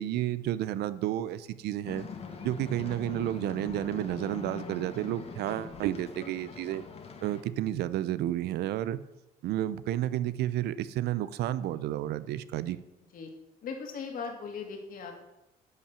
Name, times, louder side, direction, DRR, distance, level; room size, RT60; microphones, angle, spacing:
voice 1, 0.0-2.1 2.4-6.8 7.2-9.0 9.4-12.8, right 13 dB, 75° right, 15 dB, 0.6 m, -31 dB
sound 1, 1.8-7.4, left 4 dB, 35° left, 1.5 m, -42 dB
voice 2, 13.6-15.2, left 5 dB, 55° left, 3 dB, 2.5 m, -38 dB
11.0 x 5.6 x 6.9 m, 0.92 s
cardioid pair, 110°, 17 cm